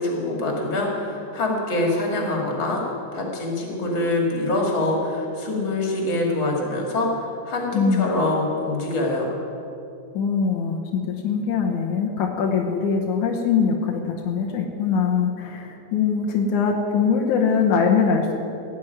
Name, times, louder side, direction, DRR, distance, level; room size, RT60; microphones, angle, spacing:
voice 1, 0.0-2.8 3.1-9.3, left 2 dB, 40° left, -1 dB, 2.9 m, -24 dB
voice 2, 7.7-8.1 10.1-18.4, left 6 dB, 85° left, 1 dB, 2.6 m, -22 dB
16.5 x 6.4 x 9.5 m, 2.7 s
omnidirectional pair, 3.4 m